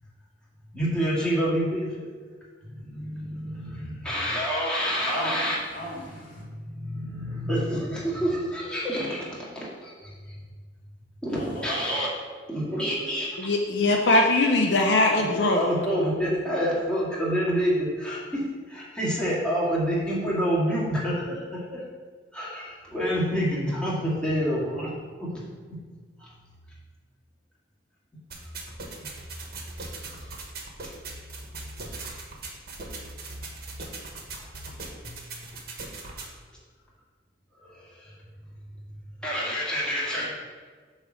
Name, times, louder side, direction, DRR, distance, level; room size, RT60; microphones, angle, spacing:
voice 1, 0.7-2.1 2.6-5.5 6.4-10.4 11.2-12.1 12.5-13.5 15.4-21.8 22.3-24.9 25.2-25.3 26.2-26.3 30.1-30.3 34.4-34.5 37.6-38.1 39.2-40.3, equal, 5° left, -7 dB, 2.1 m, -28 dB
voice 2, 4.7-6.4 11.3-11.9 40.1-40.3, equal, 50° left, -3 dB, 2.1 m, -38 dB
voice 3, 13.4-15.7, left 2 dB, 75° left, 2 dB, 0.6 m, -21 dB
sound 1, 28.3-36.3, right 2 dB, 60° right, 1.3 m, -39 dB
8.5 x 3.2 x 6.3 m, 1.5 s
head